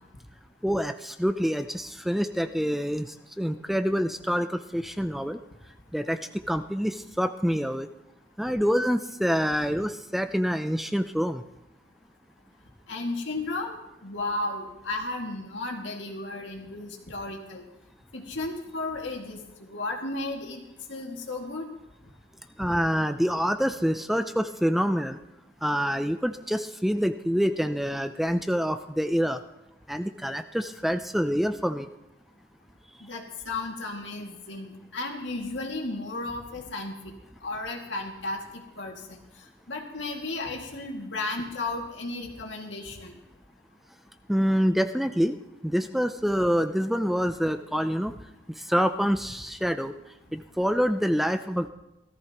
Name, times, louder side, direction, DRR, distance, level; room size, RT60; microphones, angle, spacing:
voice 1, 0.6-5.4 5.9-6.2 6.5-7.9 8.4-11.4 22.6-25.2 25.6-29.4 29.9-31.9 44.3-45.4 45.6-48.1 48.7-49.9 50.3-51.7, equal, ahead, 8 dB, 0.4 m, -26 dB
voice 2, 12.9-17.6 18.1-20.6 20.9-21.7 22.6-22.7 33.0-36.9 37.4-39.2 39.7-43.2, left 2 dB, 85° left, 1 dB, 2.2 m, -34 dB
17.5 x 14.0 x 3.0 m, 0.94 s
head